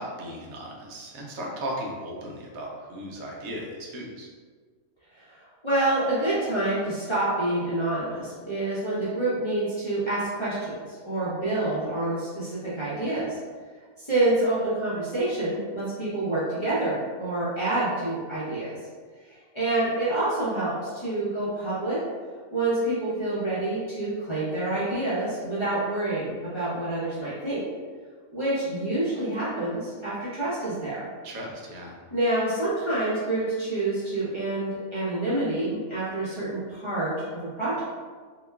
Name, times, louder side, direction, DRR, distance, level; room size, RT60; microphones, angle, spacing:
voice 1, 0.0-4.3 31.2-32.0, right 1 dB, 75° right, -2 dB, 1.0 m, -36 dB
voice 2, 5.1-13.4 14.0-18.8 19.5-22.0 22.5-27.6 28.3-31.0 32.1-37.8, right 2 dB, 30° left, -12 dB, 0.6 m, -27 dB
2.8 x 2.2 x 2.2 m, 1.5 s
omnidirectional pair, 1.5 m